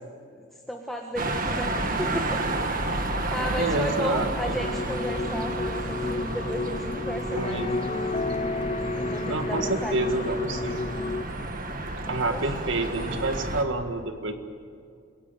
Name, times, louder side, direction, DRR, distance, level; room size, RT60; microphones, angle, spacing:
voice 1, 0.2-2.4 2.8-7.7 8.9-10.4 12.0-12.4, equal, ahead, 1 dB, 1.5 m, -34 dB
sound 1, 1.2-13.6, right 2 dB, 40° right, 1.8 m, -31 dB
voice 2, 3.6-4.5 7.3-7.8 9.3-10.9 12.1-14.3, right 2 dB, 65° right, 7 dB, 1.9 m, -28 dB
sound 2, 4.5-11.2, left 3 dB, 30° left, 0.6 m, -31 dB
28.5 x 17.5 x 9.2 m, 2.3 s
head